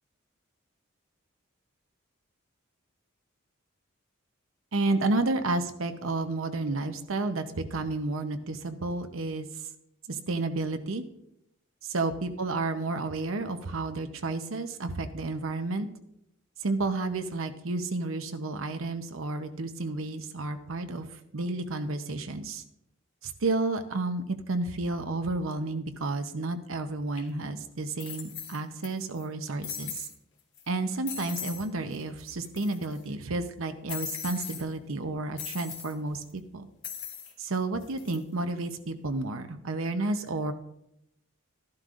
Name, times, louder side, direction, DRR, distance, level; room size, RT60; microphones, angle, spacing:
voice 1, 4.7-9.5 10.1-11.0 11.8-15.9 16.6-21.1 21.3-22.6 23.2-30.1 30.7-36.7 37.4-40.5, right 2 dB, 80° right, 8 dB, 0.8 m, -31 dB
sound 1, 27.2-27.3 28.0-28.9 29.2-29.3 29.6-30.1 30.6-30.7 31.1-31.6 31.9-32.0 32.3-33.0 33.9-34.6 35.4-35.9 36.8-37.3 37.8-38.2, left 8 dB, 65° left, 1.9 m, -39 dB
13.5 x 11.5 x 2.5 m, 0.81 s
head